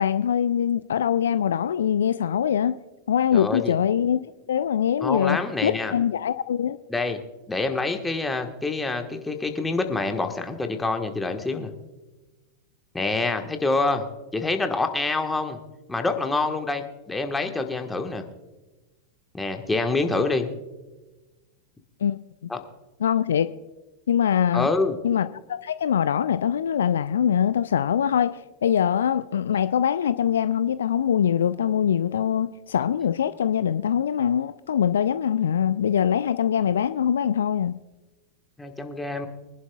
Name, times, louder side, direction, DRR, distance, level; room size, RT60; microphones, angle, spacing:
voice 1, 0.0-2.8 3.1-4.2 4.5-6.8 22.0-22.5 23.0-23.5 24.1-24.7 25.0-37.8, left 9 dB, 65° left, 0.4 m, -23 dB
voice 2, 3.3-3.8 5.0-5.9 6.9-7.2 7.5-11.7 12.9-14.1 14.3-15.6 15.9-18.2 19.3-20.5 22.5-22.6 24.5-25.0 38.6-39.3, left 3 dB, 10° left, 1.4 m, -26 dB
24.0 x 11.0 x 2.3 m
figure-of-eight pair, 90°, 0 cm